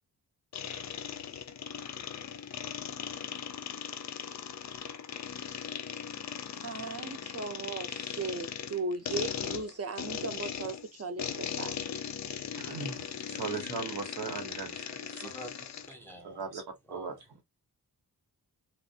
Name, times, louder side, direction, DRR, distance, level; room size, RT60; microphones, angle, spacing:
sound 1, 0.5-15.9, left 8 dB, 45° left, 0.4 m, -39 dB
voice 1, 6.6-11.8, right 3 dB, 40° right, 0.7 m, -37 dB
voice 2, 12.6-15.5 16.1-17.4, right 5 dB, 75° right, 1.0 m, -39 dB
voice 3, 15.1-16.4 16.9-17.1, equal, 5° left, 0.7 m, -46 dB
2.5 x 2.0 x 2.6 m
wide cardioid pair, 85°, 39 cm